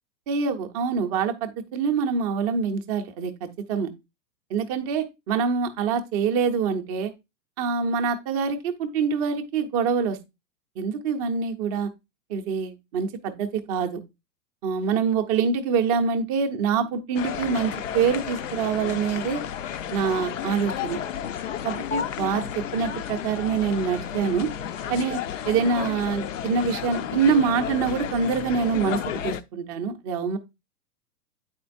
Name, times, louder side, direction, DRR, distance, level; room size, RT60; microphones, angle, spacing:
voice 1, 0.3-3.9 4.5-7.1 7.6-10.2 10.8-11.9 12.3-14.0 14.6-19.4 19.9-21.0 21.6-24.5 24.9-25.2 25.5-30.4, right 6 dB, 25° right, 0.6 m, -25 dB
sound 1, 17.2-29.4, left 9 dB, 50° left, 0.5 m, -32 dB
8.9 x 4.4 x 2.5 m
hypercardioid pair, 120°, 50 cm